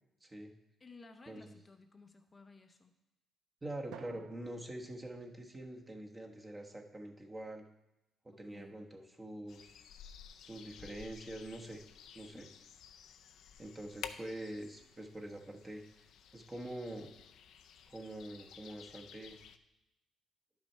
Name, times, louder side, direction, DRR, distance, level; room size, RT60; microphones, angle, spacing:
voice 1, 0.2-0.5 1.3-1.5 3.6-7.6 8.2-9.8 10.4-11.8 12.1-12.5 13.6-15.8 16.3-17.1 17.9-19.4, right 1 dB, 20° right, 2 dB, 1.2 m, -45 dB
voice 2, 0.8-3.0 8.4-8.8 12.3-12.5, left 3 dB, 30° left, 5 dB, 0.6 m, -57 dB
Drum, 3.9-6.2, right 9 dB, 80° right, 0.4 m, -56 dB
sound 1, 9.5-19.6, left 8 dB, 75° left, 0.5 m, -53 dB
10.5 x 6.0 x 4.4 m, 0.93 s
cardioid pair, 90°, 0 cm